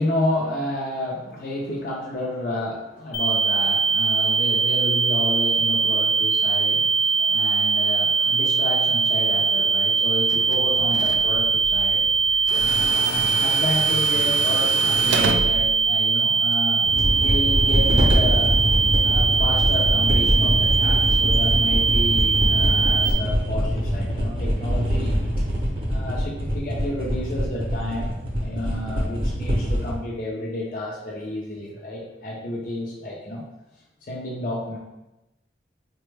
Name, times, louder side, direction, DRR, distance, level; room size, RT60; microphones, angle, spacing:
voice 1, 0.0-18.5 19.0-25.2 25.9-33.4 34.0-34.8, left 1 dB, 45° left, -3 dB, 0.5 m, -31 dB
sound 1, 3.1-23.1, right 5 dB, 80° left, 0.8 m, -21 dB
Tools, 10.3-16.5, right 4 dB, 75° right, 0.3 m, -30 dB
sound 2, 16.8-29.9, equal, 30° right, 0.6 m, -23 dB
3.9 x 2.1 x 3.2 m, 0.96 s
head